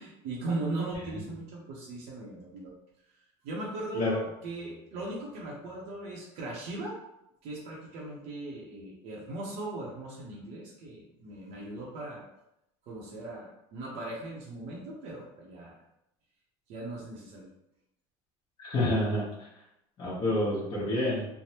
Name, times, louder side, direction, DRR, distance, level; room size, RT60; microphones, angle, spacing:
voice 1, 0.0-2.7 3.4-6.9 7.4-12.3 12.9-15.8 16.7-17.5, right 2 dB, 60° right, -4 dB, 0.7 m, -38 dB
voice 2, 18.6-19.2 20.0-21.3, left 1 dB, 40° left, -9 dB, 1.0 m, -28 dB
3.3 x 2.0 x 2.8 m, 0.84 s
cardioid pair, 150°, 12 cm